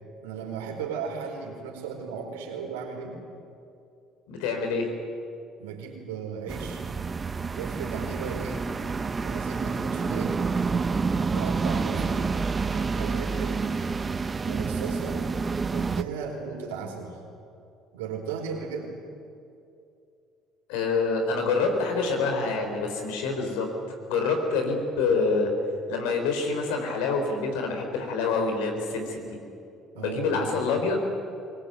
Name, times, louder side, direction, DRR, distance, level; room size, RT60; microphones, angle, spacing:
voice 1, 0.2-3.2 5.6-6.8 7.5-8.7 9.2-10.5 11.3-12.2 12.7-13.7 14.4-15.3 15.7-17.2 17.9-18.9 30.0-30.5, right 6 dB, 90° right, 1 dB, 4.5 m, -36 dB
voice 2, 4.3-4.9 20.7-23.7 24.1-25.5 25.9-29.4 29.9-31.0, left 4 dB, 80° left, 4 dB, 4.4 m, -26 dB
sound 1, 6.5-16.0, right 4 dB, 30° right, 1.0 m, -28 dB
22.5 x 20.0 x 9.3 m, 2.6 s
hypercardioid pair, 65°, 0 cm